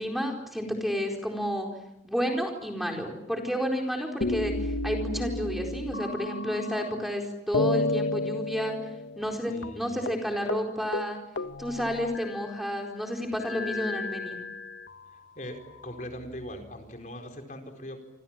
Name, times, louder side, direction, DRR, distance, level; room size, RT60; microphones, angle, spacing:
voice 1, 0.0-1.7 2.0-8.7 9.1-11.2 11.6-14.4, equal, ahead, 1 dB, 4.4 m, -31 dB
sound 1, 4.2-7.2 7.5-9.4 9.6-9.7 10.1-10.2 10.5-10.7 10.9-12.7 13.4-15.0 15.7-16.6, left 2 dB, 90° left, 1.3 m, -32 dB
voice 2, 9.5-10.0 15.1-18.0, equal, 45° left, 4 dB, 4.6 m, -41 dB
28.5 x 26.5 x 7.5 m, 0.86 s
head